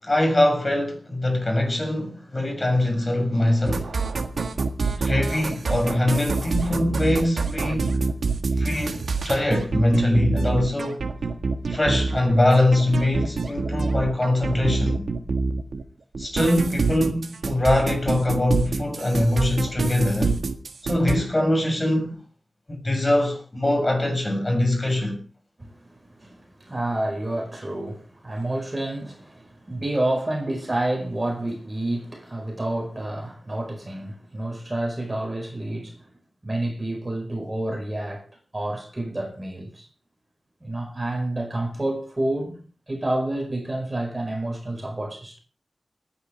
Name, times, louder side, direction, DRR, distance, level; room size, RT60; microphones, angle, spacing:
voice 1, 0.0-3.9 5.0-8.0 8.6-11.0 11.7-15.1 16.2-20.4 20.8-22.2 22.7-25.2, left 1 dB, 30° left, 7.3 m, -22 dB
sound 1, 3.7-15.8 16.1-21.2, right 4 dB, 80° right, 1.6 m, -26 dB
voice 2, 25.6-36.1 36.4-38.3 38.5-39.9 40.6-42.6 42.9-45.4, right 1 dB, 25° right, 4.8 m, -29 dB
29.0 x 10.0 x 3.4 m
wide cardioid pair, 75°, 0 cm